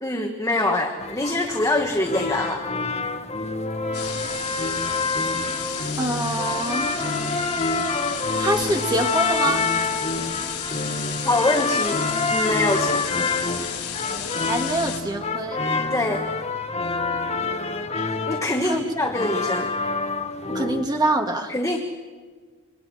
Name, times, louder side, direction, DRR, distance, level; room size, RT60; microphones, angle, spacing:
voice 1, 0.0-2.6 11.2-12.0 12.3-13.1 15.9-16.2 18.3-19.7 21.5-21.8, left 2 dB, 15° left, 2 dB, 1.4 m, -24 dB
sound 1, 1.0-20.8, left 3 dB, 30° left, 1.6 m, -27 dB
sound 2, 3.9-15.0, left 8 dB, 80° left, 5.4 m, -32 dB
voice 2, 6.0-7.0 8.4-9.6 14.4-15.6 18.6-18.8 20.5-21.5, right 2 dB, 20° right, 4 dB, 1.7 m, -25 dB
26.5 x 24.0 x 6.3 m, 1.5 s
head